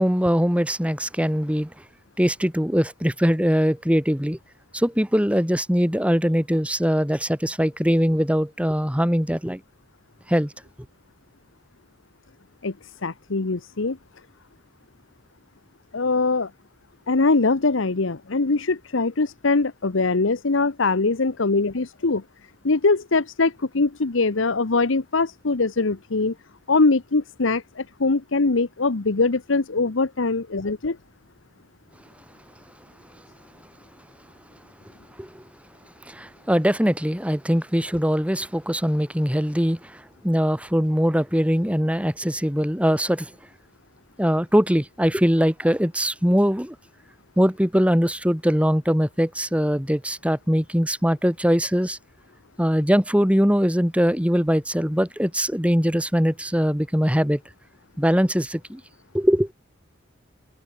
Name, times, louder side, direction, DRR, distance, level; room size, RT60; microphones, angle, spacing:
voice 1, 0.0-1.7 2.2-4.4 4.7-9.6 10.3-10.5 35.2-35.4 36.1-43.3 44.2-46.8 47.4-52.0 52.6-57.4 58.0-58.8 59.1-59.5, equal, 5° right, 4.1 m, -21 dB
voice 2, 13.0-14.0 15.9-16.5 17.1-22.2 22.6-26.3 26.7-31.0, left 3 dB, 90° left, 1.0 m, -22 dB
head